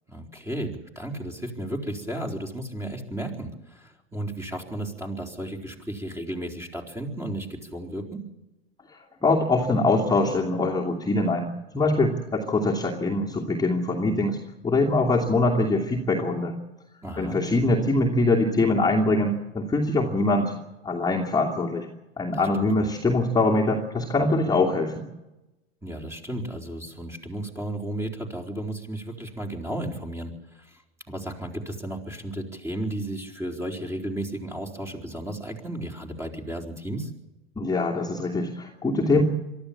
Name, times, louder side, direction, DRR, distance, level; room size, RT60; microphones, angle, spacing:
voice 1, 0.1-8.3 17.0-17.4 22.3-22.9 25.8-30.8 31.1-37.1, right 1 dB, 10° right, 2 dB, 4.1 m, -34 dB
voice 2, 9.2-14.4 14.6-16.6 17.2-20.5 20.8-21.9 22.2-25.1 37.6-39.2, left 2 dB, 10° left, -2 dB, 2.6 m, -23 dB
23.0 x 14.0 x 8.7 m, 0.99 s
hypercardioid pair, 100°, 32 cm